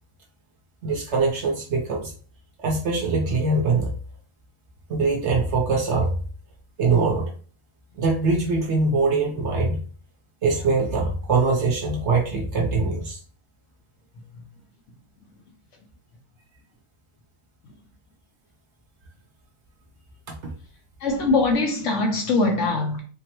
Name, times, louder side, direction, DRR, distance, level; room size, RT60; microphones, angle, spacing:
voice 1, 0.8-2.1 2.6-3.9 4.9-6.1 6.8-7.3 8.0-9.8 10.4-13.2 20.4-20.5, right 3 dB, 60° right, 0.8 m, -22 dB
voice 2, 21.0-23.0, left 3 dB, 60° left, 0.9 m, -22 dB
3.6 x 2.0 x 2.9 m
omnidirectional pair, 1.6 m